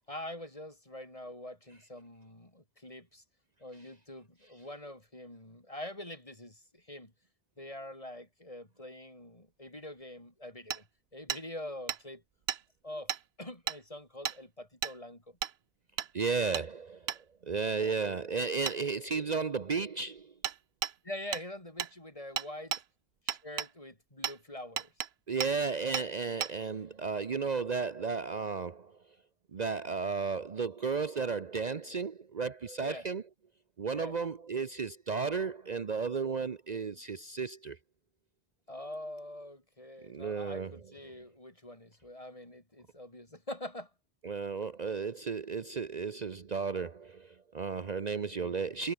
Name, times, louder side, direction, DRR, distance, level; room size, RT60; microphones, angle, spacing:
voice 1, 0.1-3.2 3.6-7.1 7.6-10.9 11.1-12.2 12.8-13.1 13.4-15.4 17.7-17.9 21.0-22.7 23.3-24.9 32.8-33.1 33.9-34.2 38.7-43.9, left 1 dB, 35° left, 4.7 m, -44 dB
Hammer, 10.7-10.8 11.3-11.4 11.9-12.0 12.5-12.6 13.1-13.2 13.7-13.8 14.2-14.4 14.8-15.0 15.4-15.5 16.0-16.1 16.5-16.7 17.1-17.2 18.7-18.8 20.4-20.6 20.8-20.9 21.3-21.5 21.8-21.9 22.4-22.8 23.3-23.7 24.2-24.4 24.8-25.1 25.4-25.5 25.9-26.1 26.4-26.5, right 9 dB, 90° right, 1.1 m, -34 dB
voice 2, 16.1-17.1 17.4-20.3 25.3-29.0 29.5-33.2 33.8-37.8 40.0-40.8 44.2-48.9, right 5 dB, 45° right, 0.9 m, -34 dB
omnidirectional pair, 1.0 m